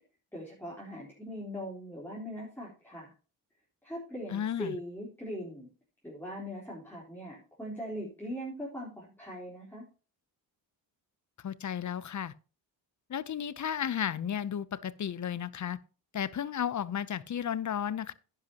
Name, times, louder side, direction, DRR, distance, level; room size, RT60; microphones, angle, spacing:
voice 1, 0.3-3.1 3.8-5.7 6.0-9.8, equal, 5° left, 4.0 m, -40 dB
voice 2, 4.3-4.7 11.4-12.3 13.1-15.8 16.1-18.1, left 9 dB, 40° left, 0.8 m, -33 dB
10.5 x 10.5 x 2.9 m
cardioid pair, 95°, 45 cm